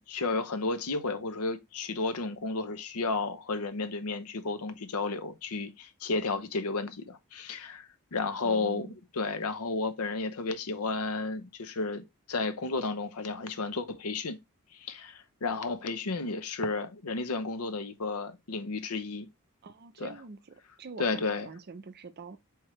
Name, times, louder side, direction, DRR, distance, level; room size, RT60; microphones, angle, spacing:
voice 1, 0.1-14.4 14.7-19.3 20.0-20.2 21.0-21.5, left 3 dB, 80° left, 0.7 m, -32 dB
voice 2, 8.4-9.0 19.6-22.4, right 4 dB, 45° right, 0.5 m, -45 dB
4.7 x 3.6 x 3.0 m
head